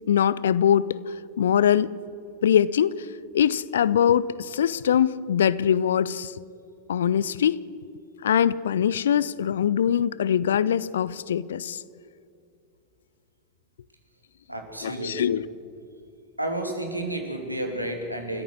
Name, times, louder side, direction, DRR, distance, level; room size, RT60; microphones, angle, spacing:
voice 1, 0.1-2.0 2.4-3.1 3.3-6.3 6.9-7.6 8.2-11.8 14.8-15.4, left 9 dB, 65° left, 20 dB, 0.6 m, -22 dB
voice 2, 14.5-15.3 16.4-18.4, right 1 dB, 85° right, 3 dB, 3.1 m, -31 dB
30.0 x 14.5 x 6.5 m, 2.6 s
figure-of-eight pair, 90°, 0 cm